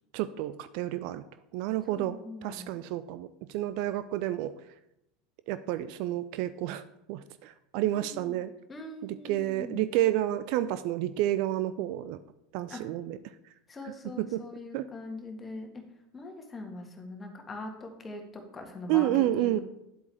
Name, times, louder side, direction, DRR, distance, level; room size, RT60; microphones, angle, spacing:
voice 1, 0.1-1.2 1.5-4.5 5.5-8.5 9.0-12.2 12.5-13.2 14.2-14.4 14.7-14.9 18.9-19.6, right 13 dB, 50° right, 13 dB, 0.4 m, -30 dB
voice 2, 1.9-2.8 7.9-8.4 8.7-9.8 12.7-12.8 13.7-15.7 16.1-19.1 19.4-19.6, left 2 dB, 20° left, 3 dB, 1.7 m, -42 dB
10.5 x 8.0 x 3.4 m, 0.87 s
figure-of-eight pair, 75°, 0 cm